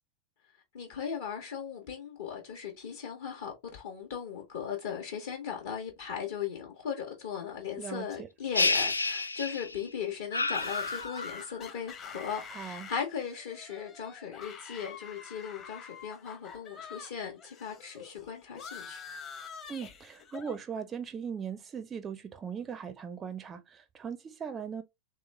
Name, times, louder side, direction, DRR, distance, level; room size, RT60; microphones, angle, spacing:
voice 1, 0.7-19.0, left 7 dB, 55° left, 0.9 m, -38 dB
voice 2, 7.8-8.3 12.4-12.9 19.7-24.8, right 7 dB, 20° right, 0.4 m, -39 dB
sound 1, 8.5-9.9 10.3-11.6, left 3 dB, 80° left, 0.3 m, -30 dB
sound 2, 10.5-17.1 17.4-20.6, left 6 dB, 30° left, 0.8 m, -47 dB
3.2 x 3.0 x 3.2 m
figure-of-eight pair, 90°, 0 cm